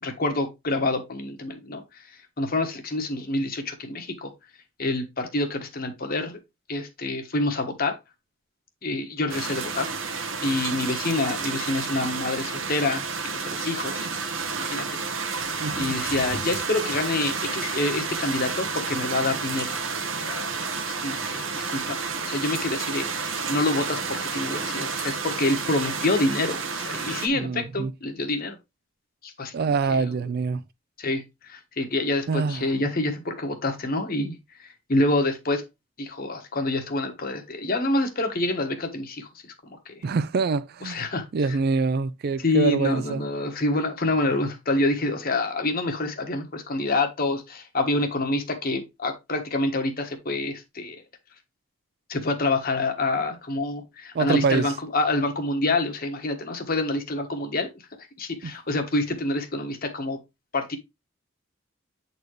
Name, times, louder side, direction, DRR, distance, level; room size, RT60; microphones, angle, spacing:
voice 1, 0.0-2.0 2.4-4.3 4.8-6.4 6.7-8.0 8.8-13.0 13.3-14.1 14.5-15.0 15.7-19.8 20.2-20.5 21.0-28.6 29.2-29.7 31.0-35.6 36.0-40.0 40.8-41.3 42.4-51.0 52.1-57.7 58.2-60.2 60.5-60.8, left 2 dB, 45° left, 1.4 m, -27 dB
sound 1, 9.3-27.3, right 4 dB, 70° right, 1.1 m, -30 dB
voice 2, 15.6-16.0 27.3-27.9 29.5-30.6 32.3-32.7 40.0-41.0 41.3-43.3 54.1-54.7 58.4-58.5, right 4 dB, 50° right, 0.4 m, -25 dB
8.3 x 4.2 x 3.2 m
head